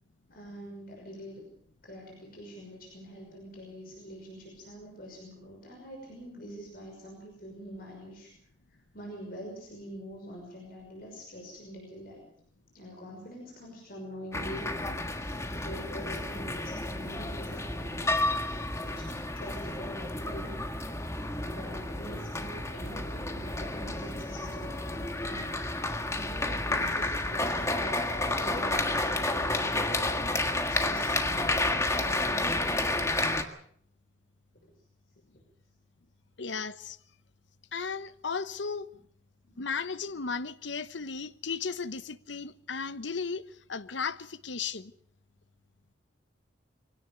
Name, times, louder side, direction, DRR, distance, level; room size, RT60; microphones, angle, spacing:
voice 1, 0.3-1.4 1.8-8.3 8.7-12.2 12.7-18.2 18.7-20.6 21.5-25.5 26.0-30.3 30.7-32.5 34.6-34.7 39.4-39.5, equal, 50° left, 6.0 m, -45 dB
sound 1, 14.3-33.4, left 2 dB, 15° left, 1.6 m, -31 dB
voice 2, 36.4-37.0 37.7-38.9 39.6-43.4 43.7-44.9, left 5 dB, 75° left, 0.9 m, -35 dB
23.5 x 17.5 x 7.0 m
head